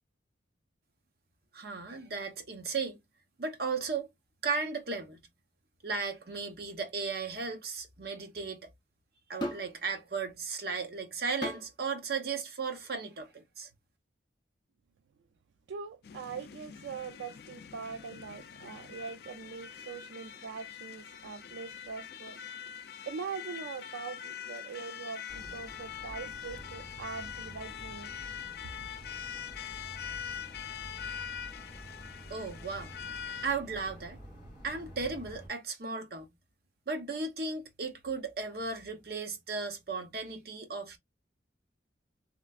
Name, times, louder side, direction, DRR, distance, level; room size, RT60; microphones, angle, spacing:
voice 1, 1.5-3.0 3.4-4.1 4.4-5.2 5.8-8.7 9.3-13.7 32.3-32.9 33.4-34.2 34.6-36.3 36.9-41.0, right 4 dB, 55° right, 0.8 m, -35 dB
sound 1, 9.4-9.8 11.4-11.7 12.8-13.0, equal, 25° left, 0.7 m, -37 dB
voice 2, 15.7-22.4 23.1-28.1, right 5 dB, 80° right, 0.4 m, -42 dB
sound 2, 16.0-33.5, left 9 dB, 60° left, 0.3 m, -43 dB
sound 3, 25.3-35.5, equal, 20° right, 2.2 m, -49 dB
3.2 x 2.9 x 2.3 m
head